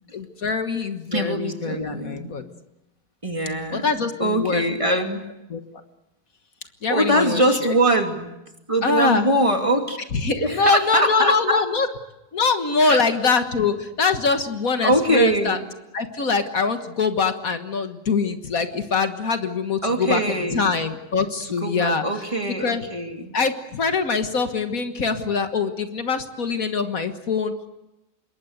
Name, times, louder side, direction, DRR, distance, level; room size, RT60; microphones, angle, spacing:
voice 1, 0.1-2.4 3.7-4.7 5.5-5.8 6.8-7.7 8.8-9.3 10.1-11.9 12.3-15.6 15.9-22.0 22.6-22.8 23.3-27.7, left 4 dB, 60° left, 8 dB, 1.9 m, -23 dB
voice 2, 1.1-2.4 3.2-3.9 4.2-5.3 6.9-8.3 8.7-10.0 10.3-11.7 12.8-13.0 14.8-15.6 19.8-20.6 21.5-23.3, right 1 dB, 20° right, 4 dB, 2.7 m, -22 dB
26.5 x 22.5 x 8.1 m, 0.95 s
omnidirectional pair, 1.7 m